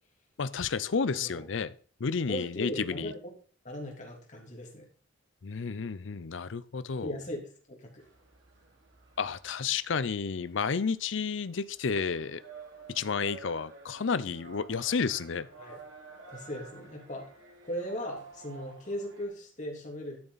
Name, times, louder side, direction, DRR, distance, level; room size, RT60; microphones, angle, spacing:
voice 1, 0.4-1.7 2.0-3.1 5.4-7.2 9.2-12.4 12.9-15.5, left 5 dB, 70° left, 16 dB, 0.6 m, -31 dB
voice 2, 1.1-1.4 2.3-3.2 3.6-4.9 7.0-7.4 7.7-8.0 15.6-15.8 16.3-17.3 17.6-20.2, equal, 40° left, -1 dB, 3.3 m, -38 dB
sound 1, 8.0-19.3, right 3 dB, 75° right, 2.7 m, -51 dB
12.5 x 6.9 x 4.1 m, 0.42 s
head